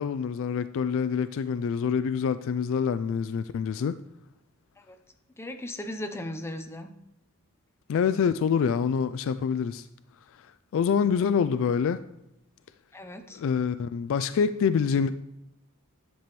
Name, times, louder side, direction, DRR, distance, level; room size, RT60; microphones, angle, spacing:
voice 1, 0.0-4.0 7.9-9.9 10.7-12.0 13.3-15.1, left 6 dB, 65° left, 0.3 m, -26 dB
voice 2, 5.4-6.9 12.9-13.4, left 1 dB, 10° left, 0.6 m, -37 dB
10.0 x 6.8 x 3.1 m
head